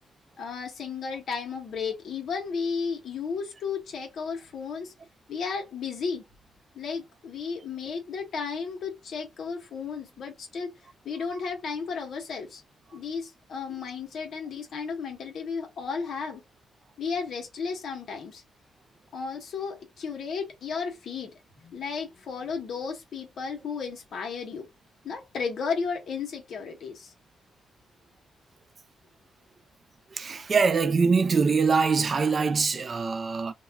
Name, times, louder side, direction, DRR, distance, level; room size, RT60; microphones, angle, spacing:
voice 1, 0.4-4.9 5.3-6.2 6.7-10.7 11.0-12.6 12.9-16.4 17.0-18.4 19.1-24.7 25.0-27.1, left 5 dB, 65° left, 0.9 m, -34 dB
voice 2, 30.1-33.5, right 5 dB, 40° right, 0.4 m, -23 dB
2.3 x 2.2 x 3.3 m
cardioid pair, 110°, 0 cm